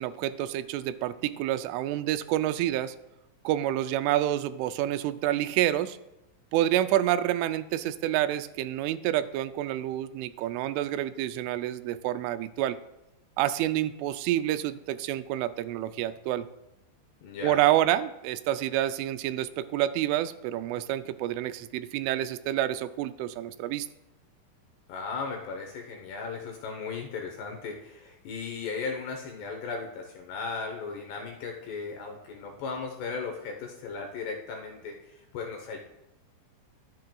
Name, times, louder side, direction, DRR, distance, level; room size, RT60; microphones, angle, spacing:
voice 1, 0.0-3.0 3.4-6.0 6.5-12.8 13.4-16.5 17.4-23.9, right 13 dB, 85° right, 12 dB, 3.0 m, -28 dB
voice 2, 17.2-17.6 24.9-35.8, left 4 dB, 70° left, 2 dB, 2.8 m, -36 dB
22.5 x 7.7 x 2.3 m, 0.90 s
omnidirectional pair, 5.5 m